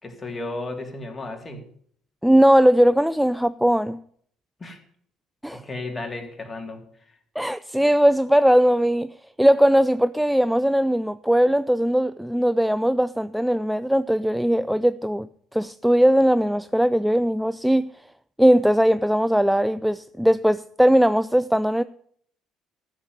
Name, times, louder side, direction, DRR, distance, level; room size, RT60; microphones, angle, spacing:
voice 1, 0.0-1.7 4.6-4.8 5.5-7.2, left 2 dB, 20° left, 3.5 m, -34 dB
voice 2, 2.2-4.0 5.4-5.6 7.4-9.1 9.4-17.9 18.4-21.8, equal, 5° right, 0.5 m, -19 dB
14.0 x 7.3 x 9.7 m
hypercardioid pair, 55°, 0 cm